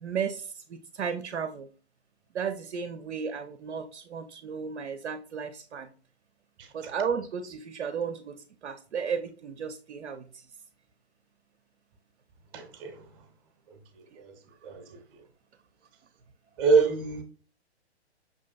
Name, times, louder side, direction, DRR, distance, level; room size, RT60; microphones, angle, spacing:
voice 1, 0.0-1.7 2.3-5.9 6.7-10.3 14.1-14.2, right 6 dB, 80° right, 0.5 m, -34 dB
voice 2, 12.5-13.0 14.2-14.4 14.6-15.0 16.6-17.2, right 4 dB, 20° right, 0.5 m, -25 dB
5.8 x 2.5 x 2.2 m
figure-of-eight pair, 130°, 34 cm